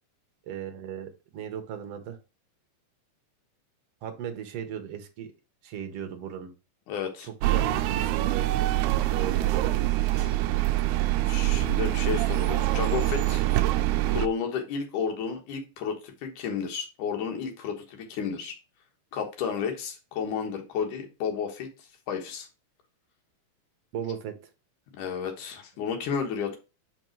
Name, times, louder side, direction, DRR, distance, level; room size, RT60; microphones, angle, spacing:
voice 1, 0.5-2.2 4.0-5.3 5.6-6.5 7.2-8.5 8.8-9.8 23.9-24.4, right 8 dB, 65° right, 6 dB, 1.8 m, -37 dB
voice 2, 6.9-7.3 10.2-10.4 11.2-13.4 14.1-18.6 19.1-21.7 22.1-22.5 24.9-26.6, left 6 dB, 75° left, 3 dB, 2.9 m, -32 dB
sound 1, 7.4-14.3, right 16 dB, 80° right, 2.0 m, -25 dB
5.5 x 5.3 x 4.6 m, 0.30 s
omnidirectional pair, 3.6 m